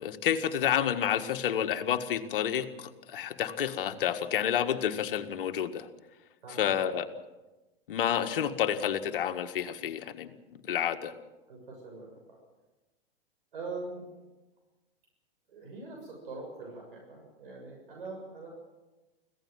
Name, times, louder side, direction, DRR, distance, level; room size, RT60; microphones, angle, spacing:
voice 1, 0.0-5.9 6.6-7.1 7.9-10.3 10.6-11.1, left 9 dB, 60° left, 7 dB, 1.8 m, -29 dB
voice 2, 6.4-6.7 11.5-12.4 13.5-14.1 15.5-18.5, right 3 dB, 65° right, 0 dB, 7.1 m, -43 dB
25.5 x 16.5 x 7.6 m, 1.1 s
figure-of-eight pair, 100°, 30 cm